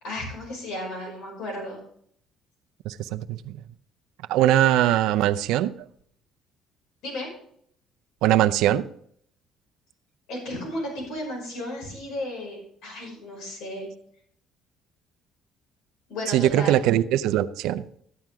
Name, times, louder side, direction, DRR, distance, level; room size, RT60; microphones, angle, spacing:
voice 1, 0.0-1.8 7.0-7.3 10.3-13.9 16.1-16.8, left 1 dB, 75° left, 5.6 m, -34 dB
voice 2, 2.9-3.5 4.3-5.7 8.2-8.8 16.3-17.8, right 13 dB, 80° right, 0.5 m, -21 dB
13.0 x 9.2 x 3.6 m
cardioid pair, 165°, 0 cm